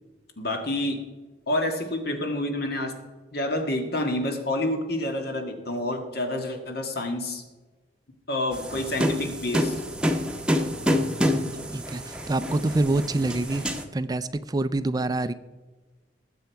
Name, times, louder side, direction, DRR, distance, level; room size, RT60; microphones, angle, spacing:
voice 1, 0.4-1.0 1.5-3.0 3.3-7.4 8.3-9.8, left 1 dB, 60° left, 5 dB, 1.9 m, -28 dB
sound 1, 8.5-13.8, equal, 5° right, 0.9 m, -27 dB
voice 2, 11.7-13.7 13.9-15.3, right 2 dB, 20° right, 13 dB, 0.4 m, -26 dB
19.5 x 7.8 x 4.6 m, 1.3 s
head